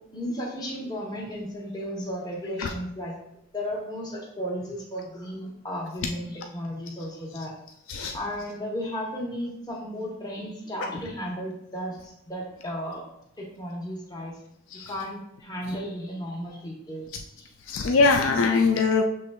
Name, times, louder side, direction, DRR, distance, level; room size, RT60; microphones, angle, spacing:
voice 1, 0.1-3.1 3.5-7.5 8.1-13.0 13.4-14.4 14.7-17.1 17.3-17.5, equal, 20° left, -2 dB, 0.9 m, -34 dB
voice 2, 17.7-19.0, left 4 dB, 80° left, 4 dB, 0.4 m, -22 dB
6.7 x 3.2 x 2.2 m, 0.79 s
head